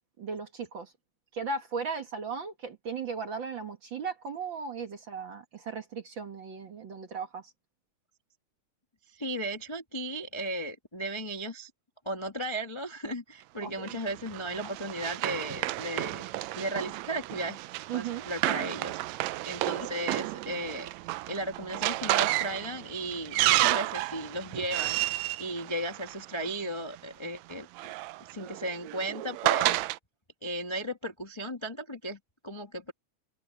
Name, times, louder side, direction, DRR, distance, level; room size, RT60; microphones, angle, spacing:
voice 1, 0.2-0.9 1.3-7.5 13.6-14.0 17.9-18.2, right 5 dB, 50° right, 1.6 m, -36 dB
voice 2, 9.1-11.7 12.0-16.3 16.5-17.6 17.9-20.9 21.3-27.7 28.3-29.9 30.4-32.9, right 1 dB, 30° left, 0.5 m, -35 dB
Run, 13.9-26.5 27.5-30.0, right 17 dB, 80° right, 1.6 m, -31 dB
omnidirectional pair, 3.7 m